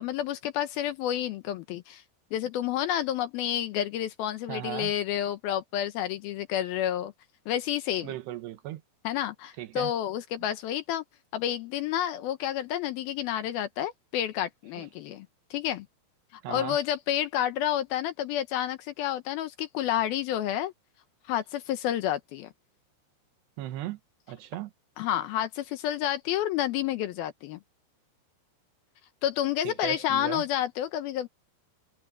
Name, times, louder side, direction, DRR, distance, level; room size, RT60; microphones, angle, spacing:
voice 1, 0.0-2.0 2.3-7.1 7.5-8.1 9.0-11.0 11.3-15.9 16.5-20.7 21.3-22.5 25.0-27.6 29.2-31.3, left 11 dB, 75° left, 2.5 m, -30 dB
voice 2, 4.5-4.9 8.0-8.8 9.6-9.9 14.8-14.9 16.4-16.8 23.6-24.0 24.3-24.7 29.6-30.4, right 13 dB, 75° right, 3.3 m, -36 dB
omnidirectional pair, 4.9 m